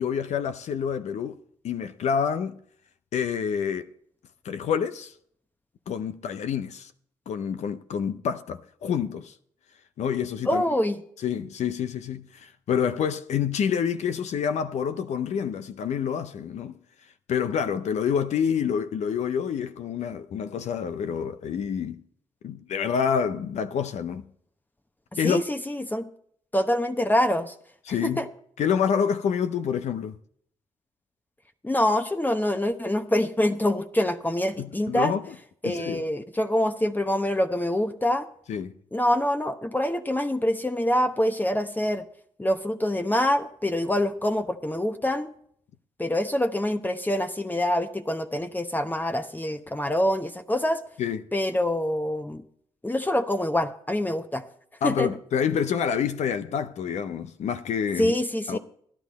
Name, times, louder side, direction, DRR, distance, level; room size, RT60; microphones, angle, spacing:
voice 1, 0.0-1.4 1.6-2.6 3.1-3.9 4.4-5.1 5.9-6.9 7.3-9.3 10.0-10.6 11.2-16.7 17.3-22.0 22.4-24.3 25.2-25.4 27.9-28.3 28.6-30.2 34.6-35.3 35.6-36.0 38.5-38.8 51.0-51.3 54.8-58.1 58.5-58.6, left 7 dB, 75° left, 0.6 m, -27 dB
voice 2, 10.5-11.0 25.2-26.1 26.5-27.5 28.0-28.2 31.6-35.1 35.6-38.3 38.9-42.0 42.4-45.3 46.0-50.8 51.3-52.4 52.8-54.4 54.8-55.1 58.0-58.6, left 1 dB, 15° left, 0.9 m, -25 dB
13.5 x 10.5 x 4.1 m
cardioid pair, 60°, 12 cm